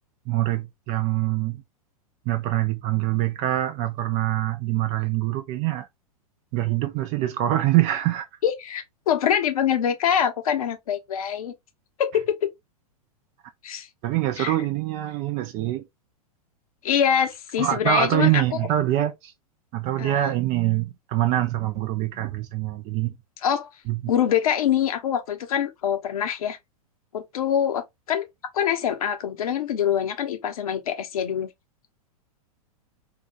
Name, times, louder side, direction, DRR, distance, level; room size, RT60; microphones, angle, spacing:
voice 1, 0.3-1.6 2.3-5.9 6.5-8.3 14.0-15.8 17.6-19.3 19.7-23.1 23.9-24.0, right 14 dB, 40° right, 0.5 m, -24 dB
voice 2, 8.4-11.5 12.0-12.5 13.6-13.9 14.4-14.6 16.8-18.4 20.0-20.3 23.4-23.7 24.1-26.6 27.1-28.3 28.5-31.5, left 9 dB, 70° left, 0.9 m, -24 dB
3.8 x 2.3 x 2.8 m
hypercardioid pair, 105°, 19 cm